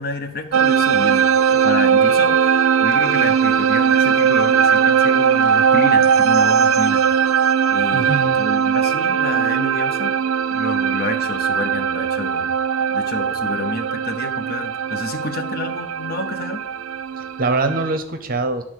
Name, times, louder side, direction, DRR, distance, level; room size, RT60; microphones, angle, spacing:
voice 1, 0.0-7.0 7.7-10.1 10.5-12.5 12.9-16.6, left 2 dB, 50° left, 8 dB, 0.8 m, -29 dB
sound 1, 0.5-18.0, right 7 dB, 80° right, 0.4 m, -19 dB
voice 2, 7.9-8.4 17.2-18.6, right 3 dB, 45° right, 8 dB, 0.7 m, -23 dB
10.5 x 3.7 x 6.4 m, 0.85 s
head